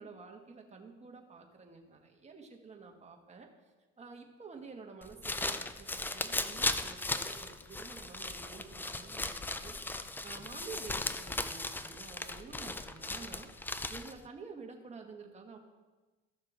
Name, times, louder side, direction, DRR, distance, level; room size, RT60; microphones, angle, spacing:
voice 1, 0.0-3.5 4.0-9.7 10.2-13.5 13.9-15.6, right 4 dB, 20° right, 2 dB, 1.7 m, -50 dB
sound 1, 5.0-14.2, left 2 dB, 5° left, 0.3 m, -37 dB
14.0 x 6.5 x 3.5 m, 1.2 s
supercardioid pair, 90°, 32 cm